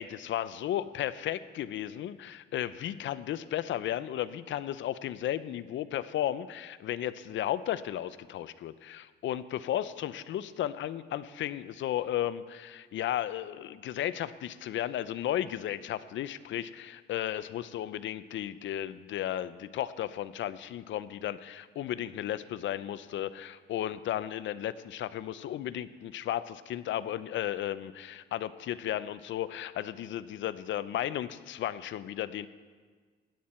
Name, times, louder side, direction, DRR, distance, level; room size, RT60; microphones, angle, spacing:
voice 1, 0.0-32.5, left 12 dB, 70° left, 14 dB, 0.6 m, -34 dB
17.0 x 10.5 x 4.4 m, 1.5 s
cardioid pair, 90°, 20 cm